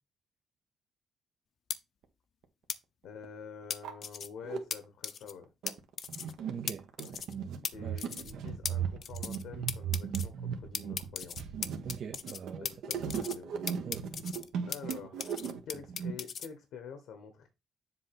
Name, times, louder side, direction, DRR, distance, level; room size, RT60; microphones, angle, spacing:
sound 1, 1.7-1.8 2.7-2.8 3.7-4.3 4.7-4.8 5.0-5.3 5.7-5.8 6.0-6.3 6.7-6.8 7.0-7.3 7.7-7.8 8.0-8.3 8.7-8.8 9.0-9.4 9.7-10.3 10.7-12.4 12.7-13.4 13.7-14.9 15.2-16.5, left 7 dB, 55° left, 0.6 m, -37 dB
sound 2, 2.4-2.5 3.2-3.3 3.6-4.6 5.2-16.1, right 7 dB, 80° right, 1.1 m, -37 dB
voice 1, 3.0-5.5 7.7-11.5 12.6-13.5 14.6-15.3 15.7-17.5, left 6 dB, 85° left, 1.2 m, -47 dB
voice 2, 6.5-7.2 7.8-8.4 11.8-12.7 13.8-14.1, right 7 dB, 60° right, 0.7 m, -43 dB
7.4 x 2.8 x 5.8 m
cardioid pair, 90°, 0 cm